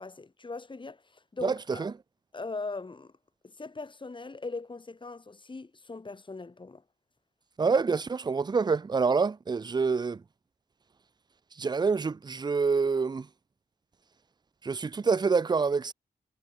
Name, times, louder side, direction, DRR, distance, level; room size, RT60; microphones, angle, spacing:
voice 1, 0.0-1.9 2.3-3.1 3.4-6.8, left 3 dB, 35° left, 4.0 m, -40 dB
voice 2, 1.4-1.9 7.6-10.2 11.6-13.3 14.6-15.9, right 5 dB, 30° right, 0.5 m, -27 dB
cardioid pair, 70°, 15 cm